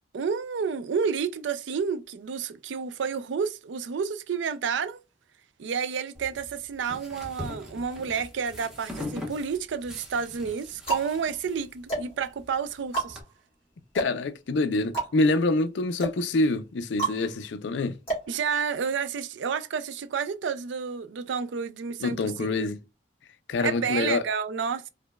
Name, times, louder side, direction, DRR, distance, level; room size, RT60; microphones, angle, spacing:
voice 1, 0.1-5.0 5.6-13.2 18.3-22.7 23.6-24.9, right 6 dB, 75° right, 0.4 m, -30 dB
sound 1, 6.1-13.2, left 2 dB, 5° right, 0.9 m, -42 dB
sound 2, 8.9-9.6 10.3-19.1, right 3 dB, 35° left, 2.0 m, -34 dB
voice 2, 13.9-18.0 22.0-22.8 23.5-24.2, left 2 dB, 75° left, 0.4 m, -26 dB
4.8 x 2.2 x 2.2 m
head